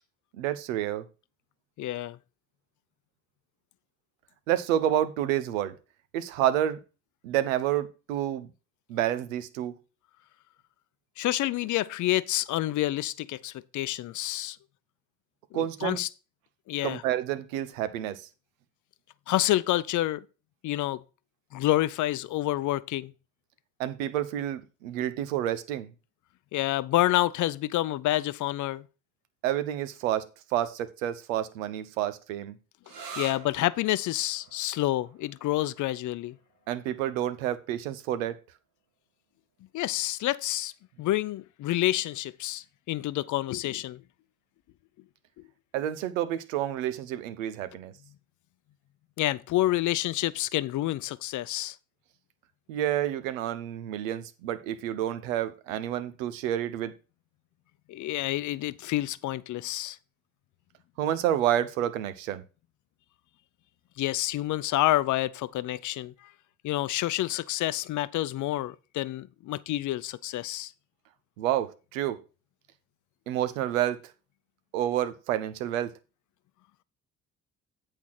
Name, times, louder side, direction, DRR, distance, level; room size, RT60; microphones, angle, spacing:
voice 1, 0.3-1.0 4.5-5.8 6.1-6.8 7.2-8.5 8.9-9.8 15.5-16.0 16.8-18.3 23.8-25.9 29.4-32.6 36.7-38.4 45.7-47.9 52.7-56.9 61.0-62.4 71.4-72.2 73.3-74.0 74.7-75.9, right 11 dB, 80° right, 0.8 m, -29 dB
voice 2, 1.8-2.2 11.2-14.6 15.5-16.1 16.7-17.0 19.3-20.2 20.6-21.0 21.5-23.1 26.5-28.8 33.2-36.4 39.7-40.7 41.0-44.0 49.2-51.8 57.9-60.0 64.0-66.3 66.6-70.7, left 15 dB, 50° left, 0.6 m, -28 dB
sound 1, 32.8-40.2, right 5 dB, 60° right, 1.7 m, -48 dB
8.3 x 4.4 x 5.9 m
hypercardioid pair, 55°, 39 cm